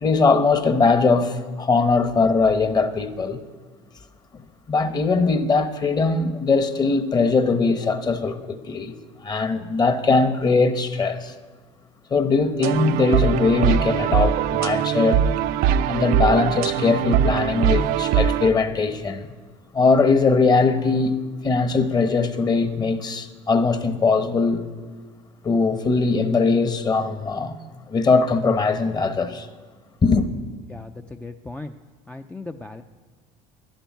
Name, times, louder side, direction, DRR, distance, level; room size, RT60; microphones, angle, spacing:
voice 1, 0.0-3.4 4.7-8.9 9.2-11.3 12.1-15.2 15.9-19.3 19.7-21.1 21.4-24.6 25.4-27.6 27.9-29.5 30.0-30.3, left 4 dB, 25° left, 1.0 m, -20 dB
sound 1, 12.6-18.5, right 9 dB, 65° right, 0.6 m, -21 dB
voice 2, 30.7-31.7 32.1-32.8, left 3 dB, 10° left, 0.4 m, -37 dB
11.5 x 11.0 x 9.3 m
cardioid pair, 135°, 17 cm